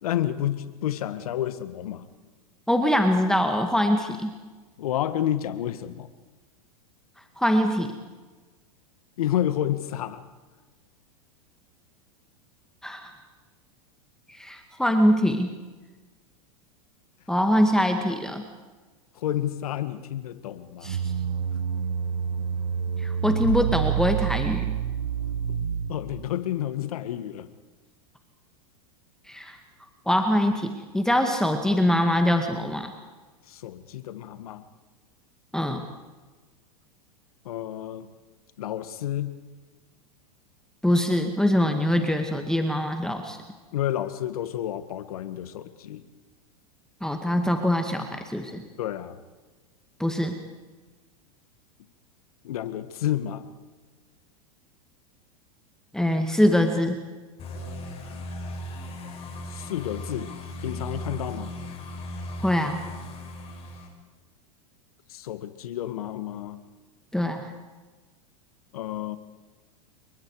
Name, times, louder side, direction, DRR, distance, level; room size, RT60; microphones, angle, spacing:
voice 1, 0.0-2.1 4.8-6.1 9.2-10.2 19.2-20.9 25.9-27.5 33.5-34.7 37.5-38.1 38.6-39.3 43.7-46.0 48.8-49.2 52.4-53.4 59.5-60.3 60.6-61.5 65.1-66.6 68.7-69.2, left 12 dB, 75° left, 11 dB, 1.9 m, -30 dB
voice 2, 2.7-4.3 7.4-7.9 12.8-13.1 14.4-15.5 17.3-18.4 20.8-21.0 23.0-24.7 29.3-29.6 30.1-32.9 35.5-35.8 40.8-43.4 47.0-48.6 50.0-50.4 55.9-57.0 62.4-62.8 67.1-67.5, equal, 5° left, 5 dB, 2.1 m, -23 dB
sound 1, 20.8-26.3, right 8 dB, 85° right, 1.4 m, -28 dB
sound 2, 57.4-63.9, equal, 30° left, 6.9 m, -37 dB
28.0 x 23.5 x 5.0 m, 1.3 s
hypercardioid pair, 110°, 19 cm